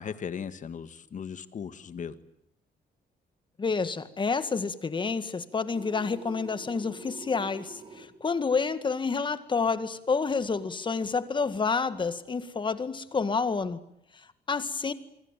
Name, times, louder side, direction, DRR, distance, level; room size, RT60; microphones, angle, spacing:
voice 1, 0.0-2.2, left 7 dB, 45° left, 12 dB, 1.8 m, -37 dB
voice 2, 3.6-13.8 14.5-14.9, left 4 dB, 25° left, 12 dB, 1.9 m, -29 dB
sound 1, 5.7-8.1, right 3 dB, 30° right, 4.0 m, -46 dB
27.5 x 23.5 x 9.1 m, 0.74 s
cardioid pair, 145°, 17 cm